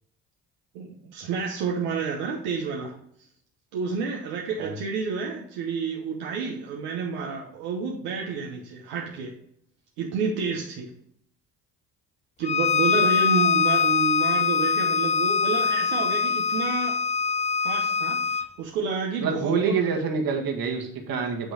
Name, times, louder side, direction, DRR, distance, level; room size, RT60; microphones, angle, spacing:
voice 1, 0.7-2.9 3.7-9.3 10.0-10.9 12.4-17.0 17.6-19.8, right 5 dB, 90° right, -1 dB, 1.0 m, -30 dB
Bowed string instrument, 12.4-18.5, left 5 dB, 20° left, 0.4 m, -23 dB
voice 2, 19.2-21.5, right 5 dB, 65° right, 2 dB, 1.6 m, -26 dB
8.9 x 3.1 x 4.8 m, 0.69 s
supercardioid pair, 60°, 37 cm